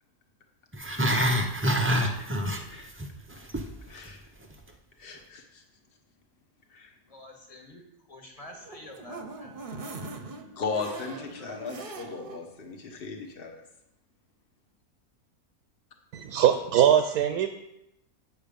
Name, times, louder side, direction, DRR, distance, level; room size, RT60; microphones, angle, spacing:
Growling, 0.7-3.1 3.3-3.7 4.1-4.2, equal, 20° right, 0.3 m, -26 dB
voice 1, 3.9-4.2 5.0-5.6 6.7-6.9 10.6-13.6, left 4 dB, 40° left, 3 dB, 1.3 m, -36 dB
voice 2, 7.1-7.8 8.1-10.0 11.0-11.5, left 1 dB, 25° left, 1 dB, 1.6 m, -48 dB
sound 1, 8.4-12.4 12.8-12.9 13.2-13.3, right 3 dB, 45° right, 0.9 m, -41 dB
voice 3, 16.1-17.5, right 10 dB, 85° right, 7 dB, 1.1 m, -22 dB
8.1 x 7.1 x 5.1 m, 0.87 s
omnidirectional pair, 1.6 m